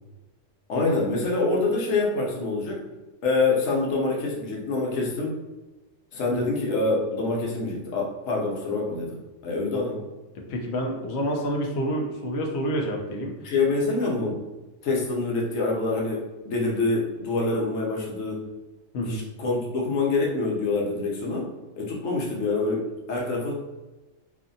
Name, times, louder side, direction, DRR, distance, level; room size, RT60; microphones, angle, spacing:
voice 1, 0.7-2.8 3.2-5.4 6.1-10.0 13.4-14.4 14.8-18.5 19.0-21.5 21.8-23.5, left 3 dB, 80° left, -2 dB, 1.1 m, -26 dB
voice 2, 10.3-13.5 18.9-19.2, equal, 65° left, 0 dB, 0.8 m, -28 dB
2.6 x 2.5 x 2.5 m, 1.1 s
omnidirectional pair, 1.3 m